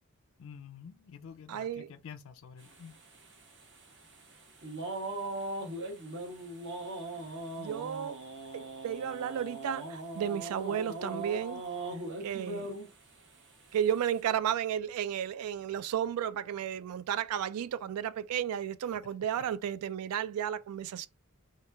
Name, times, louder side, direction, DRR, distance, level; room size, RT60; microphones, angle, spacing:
voice 1, 0.4-2.9, left 7 dB, 65° left, 0.4 m, -48 dB
voice 2, 1.5-1.9 7.6-8.2 8.5-11.6 12.2-12.8 13.7-21.1, right 9 dB, 80° right, 0.3 m, -33 dB
sound 1, 2.6-13.1 13.5-14.2, right 2 dB, 55° right, 0.9 m, -40 dB
3.0 x 2.3 x 3.3 m
head